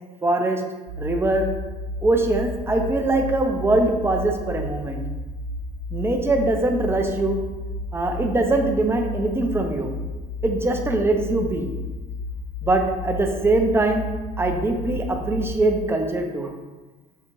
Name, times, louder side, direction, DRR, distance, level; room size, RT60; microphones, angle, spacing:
voice 1, 0.2-0.6 1.0-1.5 2.0-5.0 5.9-7.4 7.9-9.9 10.4-11.7 12.6-14.0 14.4-16.5, right 2 dB, 15° right, 3 dB, 0.5 m, -22 dB
sound 1, 0.9-15.7, left 2 dB, 60° right, 0.5 m, -32 dB
5.5 x 2.4 x 3.0 m, 1.2 s
cardioid pair, 110°, 17 cm